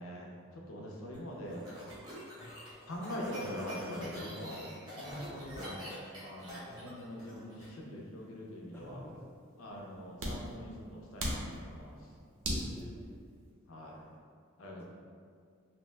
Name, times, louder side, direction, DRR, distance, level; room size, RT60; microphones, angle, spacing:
voice 1, 0.0-1.6 2.9-4.7 5.0-9.0 9.6-12.1 13.7-14.0 14.6-14.8, equal, 75° left, -2 dB, 0.5 m, -43 dB
sound 1, 1.1-7.7, equal, 20° right, 0.7 m, -46 dB
sound 2, 5.8-13.5, equal, 70° right, 0.5 m, -41 dB
voice 2, 8.7-9.2 12.3-13.2 13.8-14.1, left 1 dB, 10° left, -4 dB, 0.3 m, -51 dB
2.7 x 2.1 x 3.2 m, 2.2 s
head